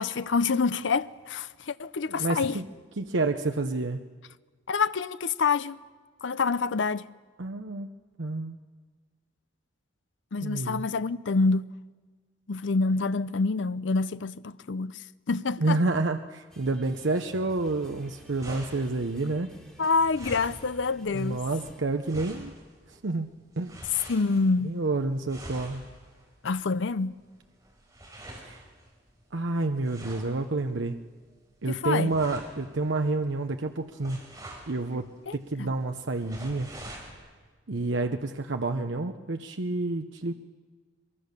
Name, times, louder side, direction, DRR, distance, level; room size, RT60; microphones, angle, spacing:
voice 1, 0.0-2.6 4.7-5.8 6.2-7.1 10.3-11.7 12.5-15.8 19.8-21.4 24.1-24.8 26.4-27.1 31.7-32.1 35.3-35.7, left 4 dB, 75° left, 0.6 m, -27 dB
voice 2, 2.1-2.6 3.0-4.0 7.4-7.9 8.2-8.6 10.4-10.8 15.6-19.5 21.1-22.5 22.9-23.7 24.6-25.8 28.4-28.6 29.3-31.0 31.6-34.2 34.7-36.7 37.7-40.3, right 2 dB, 75° right, 0.8 m, -29 dB
sound 1, 16.5-21.8, equal, 5° left, 3.0 m, -52 dB
sound 2, 17.8-37.1, right 1 dB, 20° right, 5.3 m, -47 dB
22.5 x 22.5 x 6.7 m
head